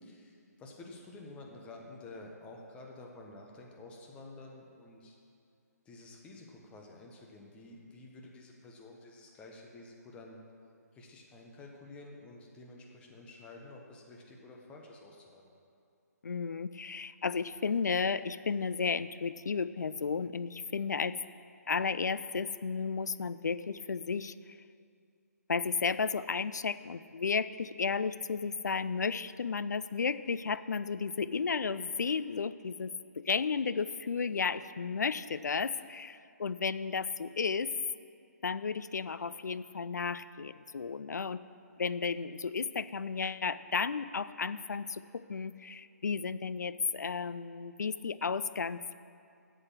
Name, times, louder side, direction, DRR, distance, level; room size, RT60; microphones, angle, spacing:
voice 1, 0.0-5.2 5.8-10.4 10.9-15.6, left 2 dB, 10° left, 0 dB, 1.1 m, -50 dB
voice 2, 16.2-21.1 21.7-24.3 25.5-37.7 38.4-41.4 41.8-48.9, left 5 dB, 75° left, 15 dB, 0.4 m, -33 dB
8.0 x 7.8 x 7.5 m, 2.4 s
figure-of-eight pair, 145°, 9 cm